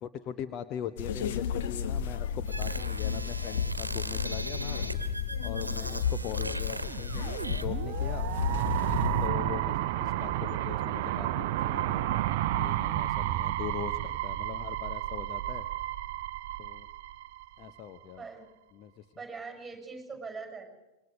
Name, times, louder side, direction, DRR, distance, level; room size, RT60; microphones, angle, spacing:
voice 1, 0.0-4.9 5.4-8.3 9.2-12.1 12.5-15.7 16.6-16.9 17.6-18.2 18.7-19.0, left 9 dB, 35° left, 10 dB, 0.8 m, -41 dB
sound 1, 1.0-9.3, left 7 dB, 55° left, 1.4 m, -32 dB
sound 2, 2.5-7.7, right 2 dB, 85° right, 1.2 m, -39 dB
sound 3, 6.8-17.7, right 14 dB, 50° right, 0.6 m, -31 dB
voice 2, 18.2-18.5 19.2-20.6, right 4 dB, 5° right, 4 dB, 6.6 m, -42 dB
26.5 x 22.0 x 5.2 m, 1.0 s
figure-of-eight pair, 90°, 0 cm